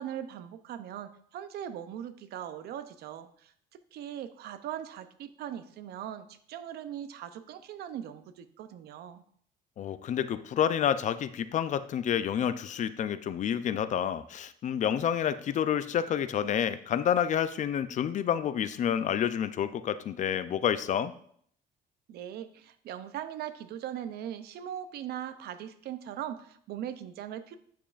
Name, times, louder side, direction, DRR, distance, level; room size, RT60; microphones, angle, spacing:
voice 1, 0.0-9.2 22.1-27.6, right 10 dB, 70° right, 11 dB, 0.6 m, -40 dB
voice 2, 9.8-21.1, left 9 dB, 45° left, 13 dB, 0.5 m, -29 dB
9.1 x 7.0 x 2.5 m, 0.63 s
cardioid pair, 110°, 17 cm